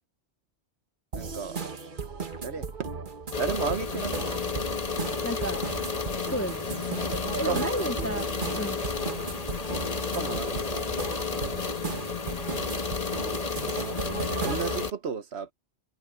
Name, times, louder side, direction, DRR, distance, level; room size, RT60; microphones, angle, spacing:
sound 1, 1.1-14.8, right 4 dB, 50° right, 1.6 m, -36 dB
voice 1, 1.1-1.6 2.4-2.9 3.4-4.4 7.3-7.9 10.1-10.9 11.3-11.6 13.1-13.4 14.4-15.5, right 6 dB, 75° right, 1.4 m, -34 dB
sound 2, 3.3-14.9, left 4 dB, 35° left, 1.2 m, -32 dB
voice 2, 5.2-5.6 6.3-6.7 7.4-8.8, equal, 15° left, 0.5 m, -32 dB
omnidirectional pair, 1.1 m